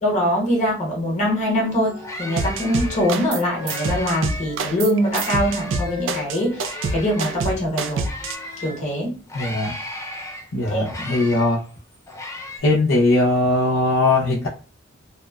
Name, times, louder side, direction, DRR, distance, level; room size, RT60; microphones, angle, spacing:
voice 1, 0.0-8.1 8.6-9.1 10.7-10.8, equal, 35° left, -3 dB, 0.9 m, -23 dB
sound 1, 1.4-1.5 1.8-4.6 5.0-8.8 9.3-12.6, left 1 dB, 15° left, 0.3 m, -36 dB
Wind instrument woodwind instrument, 1.4-8.8, left 3 dB, 25° right, 0.7 m, -40 dB
sound 2, 2.4-3.4 3.7-8.4, right 3 dB, 65° right, 0.3 m, -26 dB
voice 2, 9.3-9.7 10.5-11.6 12.6-14.5, left 2 dB, 80° left, -5 dB, 0.5 m, -19 dB
2.7 x 2.1 x 2.2 m, 0.36 s
head